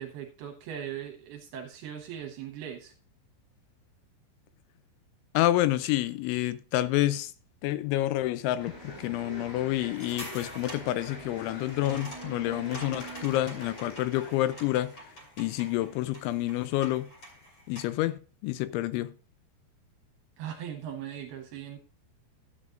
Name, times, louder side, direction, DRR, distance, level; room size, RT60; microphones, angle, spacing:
voice 1, 0.0-2.9 20.4-21.8, right 9 dB, 75° right, 2.4 m, -39 dB
voice 2, 5.3-7.3 7.6-14.9 15.4-17.1 17.7-19.1, left 15 dB, 85° left, 3.0 m, -28 dB
sound 1, 8.6-15.3, right 1 dB, 60° left, 6.1 m, -44 dB
sound 2, 9.9-18.0, equal, 30° left, 2.6 m, -47 dB
13.5 x 8.3 x 2.5 m
omnidirectional pair, 5.4 m